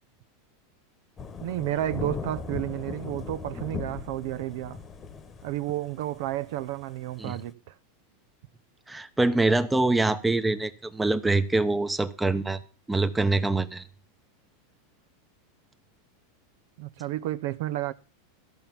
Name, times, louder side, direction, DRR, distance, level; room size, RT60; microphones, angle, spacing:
Thunder / Rain, 1.2-7.5, left 5 dB, 25° left, 1.2 m, -38 dB
voice 1, 1.4-4.8 5.4-7.7 16.8-17.9, right 14 dB, 65° right, 0.7 m, -31 dB
voice 2, 8.9-12.6 12.9-13.8, right 2 dB, 10° right, 0.9 m, -24 dB
14.5 x 5.8 x 7.2 m
supercardioid pair, 130°, 0 cm